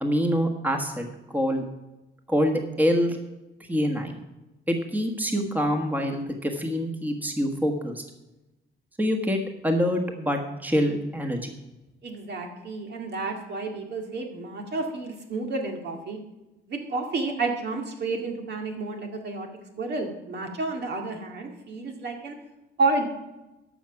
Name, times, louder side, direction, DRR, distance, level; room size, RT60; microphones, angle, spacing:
voice 1, 0.0-1.6 2.3-3.2 3.7-4.2 4.7-8.0 9.0-11.5, equal, 10° right, 4 dB, 1.4 m, -25 dB
voice 2, 12.0-16.2 16.7-19.5 19.8-22.4 22.8-23.1, right 3 dB, 60° right, 2 dB, 2.1 m, -30 dB
13.0 x 6.0 x 5.9 m, 1.0 s
cardioid pair, 90°, 20 cm